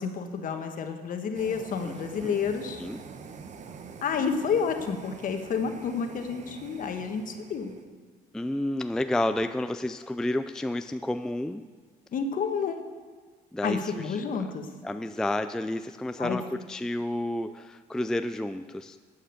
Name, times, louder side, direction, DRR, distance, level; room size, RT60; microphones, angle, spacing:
voice 1, 0.0-2.8 4.0-7.8 12.1-12.8 13.6-14.7 16.2-16.5, left 6 dB, 55° left, 6 dB, 1.4 m, -30 dB
sound 1, 1.3-7.9, right 5 dB, 45° right, 1.0 m, -45 dB
voice 2, 1.8-2.3 2.8-3.0 8.3-11.6 13.5-14.5 14.8-19.0, left 1 dB, 5° left, 10 dB, 0.3 m, -31 dB
11.5 x 8.7 x 6.6 m, 1.5 s
cardioid pair, 110°, 17 cm